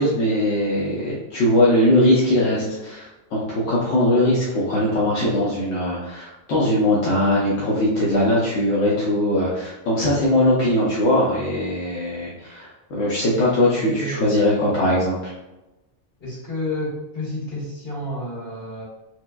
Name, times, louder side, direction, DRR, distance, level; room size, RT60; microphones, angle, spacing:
voice 1, 0.0-15.3, left 1 dB, 80° left, -6 dB, 1.0 m, -20 dB
voice 2, 13.8-14.2 16.2-18.8, left 1 dB, 60° left, -9 dB, 1.8 m, -30 dB
4.5 x 2.1 x 2.2 m, 1.0 s
omnidirectional pair, 1.2 m